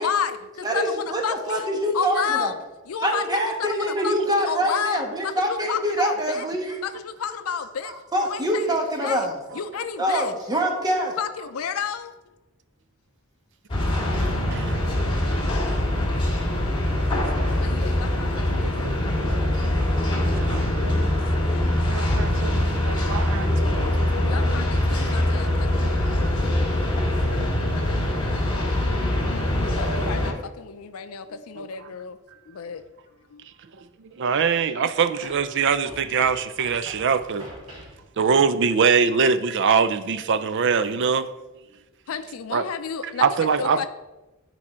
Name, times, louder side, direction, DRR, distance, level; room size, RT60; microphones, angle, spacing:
voice 1, 0.0-1.7 1.9-2.6 2.9-6.4 6.8-7.9 8.2-9.3 9.5-10.3 11.2-12.1 17.6-19.0 24.3-25.9 29.8-32.2 32.5-32.8 33.3-33.5 42.1-43.9, left 7 dB, 80° left, 10 dB, 0.5 m, -31 dB
voice 2, 0.6-1.2 1.5-2.5 3.0-6.7 8.1-9.4 10.0-11.2, equal, 20° right, 2 dB, 1.2 m, -24 dB
sound 1, 13.7-30.3, left 1 dB, 25° left, 2.3 m, -23 dB
voice 3, 17.3-17.7 18.0-18.2 18.6-19.6 20.3-20.6 21.9-24.1 28.7-29.0 31.6-31.7 34.1-37.5 38.2-41.3 42.5-42.6 43.2-43.9, right 6 dB, 60° right, 13 dB, 0.5 m, -23 dB
voice 4, 20.3-22.1 31.3-31.4, left 1 dB, 40° left, 4 dB, 0.9 m, -38 dB
sound 2, 32.8-32.9 35.2-38.0, equal, 80° right, 3.1 m, -43 dB
10.0 x 4.8 x 4.3 m, 1.1 s
head